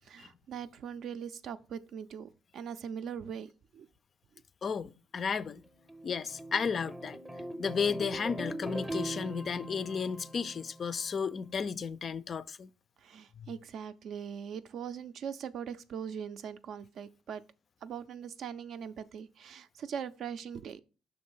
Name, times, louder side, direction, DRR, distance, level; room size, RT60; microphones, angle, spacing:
voice 1, 0.0-3.9 13.0-17.4 17.8-20.8, right 7 dB, 60° right, 0.4 m, -41 dB
voice 2, 4.6-5.6 6.0-7.2 7.6-12.7 13.4-13.5, left 6 dB, 40° left, 0.3 m, -33 dB
sound 1, 5.6-11.0, right 1 dB, 10° right, 0.7 m, -41 dB
6.0 x 3.2 x 5.4 m
cardioid pair, 105°, 0 cm